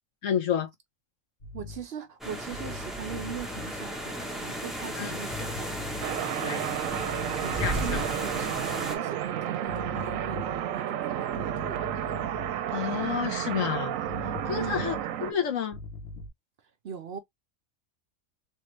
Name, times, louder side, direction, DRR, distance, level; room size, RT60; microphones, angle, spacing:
voice 1, 0.2-0.7 5.0-5.2 6.4-6.6 7.6-8.1 12.7-14.0 14.5-15.8, left 8 dB, 75° left, 1.4 m, -30 dB
sound 1, 1.4-1.9 2.5-3.8 5.3-6.3 6.9-8.2 9.7-10.9 11.3-12.6 14.1-15.3 15.7-16.3, left 4 dB, 50° left, 1.3 m, -41 dB
voice 2, 1.5-6.0 6.3-6.9 7.4-11.9 14.5-15.1 16.8-17.2, right 7 dB, 60° right, 0.8 m, -40 dB
sound 2, 2.2-9.0, equal, ahead, 0.8 m, -35 dB
sound 3, 6.0-15.3, right 11 dB, 85° right, 1.0 m, -32 dB
3.5 x 2.5 x 3.2 m
omnidirectional pair, 1.4 m